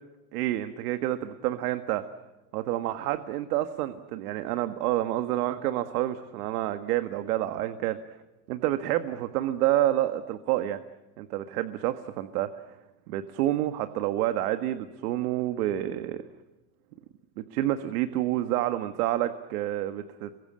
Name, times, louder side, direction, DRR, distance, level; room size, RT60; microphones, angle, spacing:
voice 1, 0.3-2.0 2.5-8.0 8.5-10.8 11.2-12.5 13.1-16.2 17.4-20.3, right 13 dB, 75° right, 9 dB, 1.7 m, -28 dB
28.5 x 24.0 x 8.7 m, 0.99 s
supercardioid pair, 150°, 46 cm